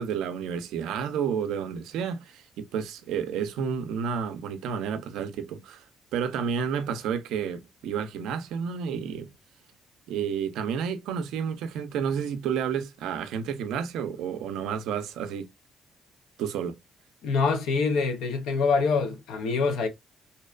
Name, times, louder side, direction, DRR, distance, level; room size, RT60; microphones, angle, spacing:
voice 1, 0.0-5.8 6.1-9.3 10.1-15.5 16.4-16.8, right 7 dB, 90° right, 0.4 m, -30 dB
voice 2, 17.2-19.9, left 4 dB, 90° left, 0.7 m, -25 dB
2.7 x 2.1 x 2.3 m
cardioid pair, 90°, 0 cm